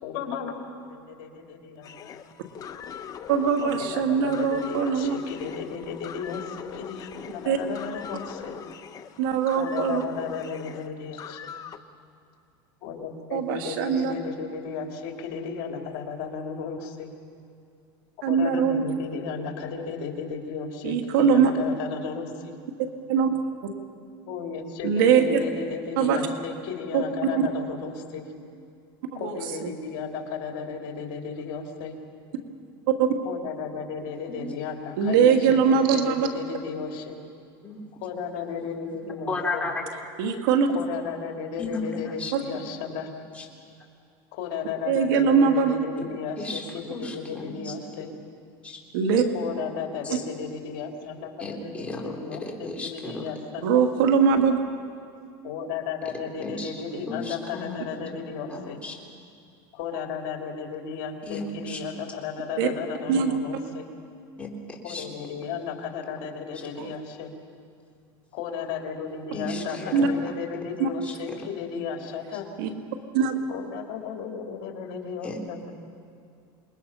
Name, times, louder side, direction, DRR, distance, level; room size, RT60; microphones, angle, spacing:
voice 1, 0.0-2.2 3.6-8.5 9.5-11.5 12.8-17.1 18.3-22.5 24.3-28.3 29.1-32.0 33.2-37.2 38.0-39.7 40.7-43.1 44.3-48.1 49.3-53.8 55.4-58.8 59.7-63.9 64.8-67.3 68.3-72.5 73.5-75.7, left 6 dB, 65° left, 2 dB, 3.2 m, -34 dB
sound 1, 1.8-11.8, left 8 dB, 35° left, 0.9 m, -40 dB
voice 2, 3.3-5.2 7.4-7.6 9.2-10.0 13.3-14.1 18.2-18.8 20.8-21.5 23.1-23.3 24.8-25.4 26.0-26.2 26.9-27.5 29.1-29.7 33.0-33.1 35.0-36.3 40.2-40.7 42.3-42.4 44.9-45.7 48.9-49.2 53.6-54.6 56.9-57.0 62.6-62.7 63.1-63.3 66.8-66.9 69.9-70.1 70.8-70.9 72.6-72.7 73.1-73.4, right 6 dB, 85° right, 5 dB, 2.1 m, -22 dB
voice 3, 39.3-39.9 41.6-42.3 43.3-43.5 46.0-46.1 46.4-47.7 48.6-48.8 50.0-50.2 51.4-53.3 56.0-56.1 56.4-58.1 58.5-59.0 61.2-61.8 64.4-65.1 69.3-70.3 71.0-71.4 75.2-75.4, left 3 dB, 10° left, -1 dB, 3.6 m, -35 dB
27.5 x 21.0 x 5.6 m, 2.4 s
supercardioid pair, 130°, 11 cm